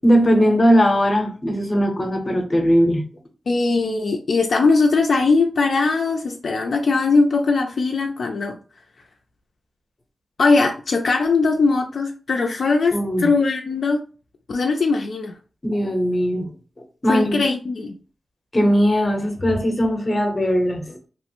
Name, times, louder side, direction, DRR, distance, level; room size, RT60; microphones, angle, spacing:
voice 1, 0.0-3.0 12.9-13.3 15.6-16.5 17.0-17.4 18.5-21.0, equal, 30° left, 4 dB, 0.7 m, -19 dB
voice 2, 3.5-8.6 10.4-14.0 14.5-15.4 17.1-17.9, left 3 dB, 65° left, 2 dB, 0.3 m, -20 dB
2.9 x 2.0 x 2.9 m, 0.37 s
wide cardioid pair, 90°, 0 cm